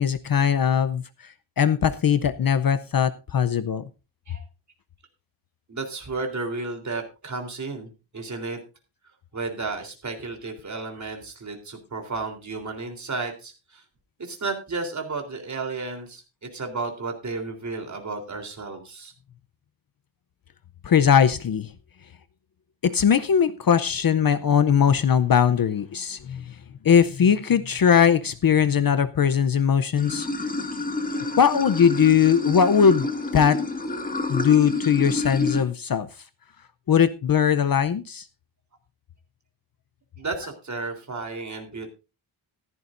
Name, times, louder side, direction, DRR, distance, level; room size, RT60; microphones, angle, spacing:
voice 1, 0.0-3.8 20.8-21.7 22.8-26.5 26.8-30.5 31.4-33.1 33.3-33.6 34.3-36.1 36.9-38.2, left 7 dB, 45° left, 14 dB, 0.7 m, -20 dB
voice 2, 5.7-8.6 9.3-13.8 14.2-16.2 16.5-19.1 40.2-41.9, right 3 dB, 35° right, 4 dB, 3.4 m, -33 dB
Water / Sink (filling or washing), 30.0-35.6, left 2 dB, 15° left, 1.9 m, -29 dB
15.5 x 13.5 x 2.5 m, 0.29 s
wide cardioid pair, 180°, 48 cm